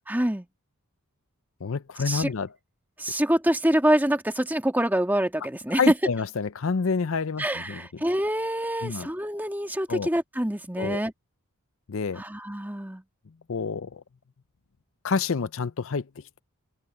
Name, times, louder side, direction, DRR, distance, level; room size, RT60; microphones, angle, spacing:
voice 1, 0.1-0.5 2.1-2.3 3.0-5.9 7.4-11.1 12.2-13.0, right 1 dB, 10° right, 1.9 m, -25 dB
voice 2, 1.6-2.5 5.8-7.8 8.8-9.1 9.9-10.1 10.8-11.0 11.9-12.2 13.5-14.0 15.0-16.1, left 5 dB, 60° left, 0.6 m, -28 dB
open air
head